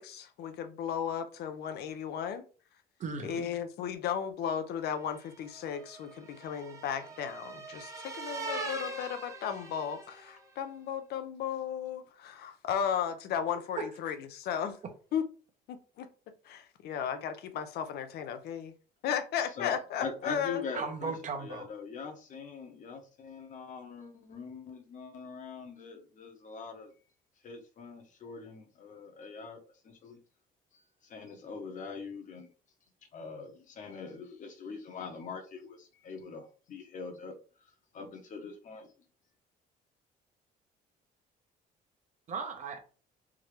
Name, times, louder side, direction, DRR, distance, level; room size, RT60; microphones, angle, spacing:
voice 1, 0.0-2.4 3.2-14.8 15.1-15.3 15.7-16.1 16.5-18.7 19.0-20.6, left 8 dB, 70° left, 0.6 m, -35 dB
voice 2, 3.0-3.4 13.8-13.9 20.7-21.6 42.3-42.8, right 5 dB, 45° right, 1.0 m, -36 dB
sound 1, 5.0-10.4, right 2 dB, 20° right, 1.0 m, -42 dB
voice 3, 19.6-26.9 27.4-29.6 29.8-30.2 31.1-32.5 33.1-37.4 37.9-38.9, left 5 dB, 50° left, 1.0 m, -43 dB
3.6 x 2.8 x 3.2 m
cardioid pair, 110°, 17 cm